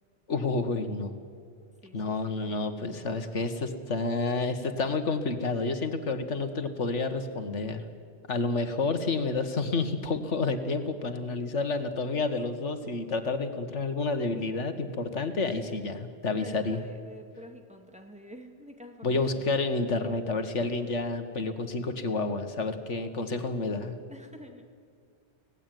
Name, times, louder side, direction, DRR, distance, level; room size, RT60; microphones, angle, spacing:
voice 1, 0.3-1.1 1.9-7.8 8.3-16.8 19.0-24.0, left 3 dB, 85° left, 8 dB, 2.0 m, -29 dB
voice 2, 1.8-2.6 3.1-3.4 16.3-19.5 24.1-24.7, equal, 5° right, 3 dB, 2.3 m, -48 dB
25.0 x 18.5 x 9.4 m, 2.2 s
omnidirectional pair, 1.2 m